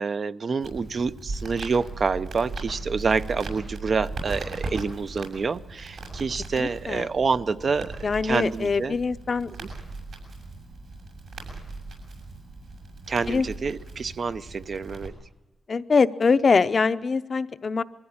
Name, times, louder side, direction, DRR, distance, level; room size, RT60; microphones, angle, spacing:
voice 1, 0.0-9.0 9.6-9.7 13.1-15.1, right 5 dB, 45° right, 13 dB, 0.7 m, -27 dB
Crackle, 0.6-15.1, right 3 dB, 80° right, 6.6 m, -38 dB
voice 2, 6.6-7.1 8.0-9.5 13.3-13.5 15.7-17.8, left 4 dB, 40° left, 12 dB, 0.7 m, -23 dB
23.0 x 14.0 x 8.7 m, 1.0 s
wide cardioid pair, 110°, 0 cm